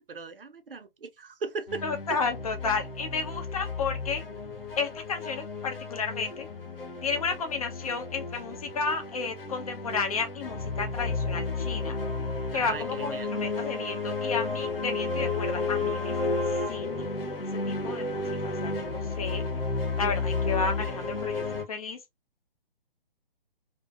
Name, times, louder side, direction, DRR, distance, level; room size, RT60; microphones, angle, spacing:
voice 1, 0.0-1.8 2.1-2.2 12.5-13.3, right 4 dB, 70° right, 0.6 m, -37 dB
sound 1, 1.7-21.6, left 3 dB, 70° left, 1.0 m, -32 dB
voice 2, 1.8-4.2 4.8-6.5 7.0-12.0 12.5-16.4 16.7-17.1 17.7-19.4 20.0-22.0, left 4 dB, 40° left, 0.6 m, -32 dB
2.6 x 2.2 x 2.3 m
figure-of-eight pair, 135°, 30 cm